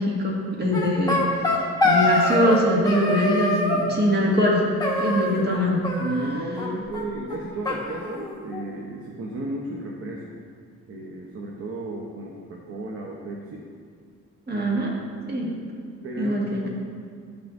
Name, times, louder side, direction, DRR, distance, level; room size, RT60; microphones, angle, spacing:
voice 1, 0.0-4.7 5.0-5.8 14.5-14.9 15.3-15.5 16.2-16.6, equal, 35° right, -3 dB, 1.9 m, -23 dB
sound 1, 0.7-2.6 2.8-3.9 4.8-5.6 5.8-6.7 6.9-7.0 7.3-7.4 7.6-8.7, left 2 dB, 15° left, 1.3 m, -24 dB
voice 2, 6.0-10.5 10.9-13.7 14.5-14.7 16.0-16.7, right 2 dB, 50° right, -1 dB, 0.9 m, -33 dB
11.0 x 6.0 x 2.6 m, 2.2 s
cardioid pair, 90°, 30 cm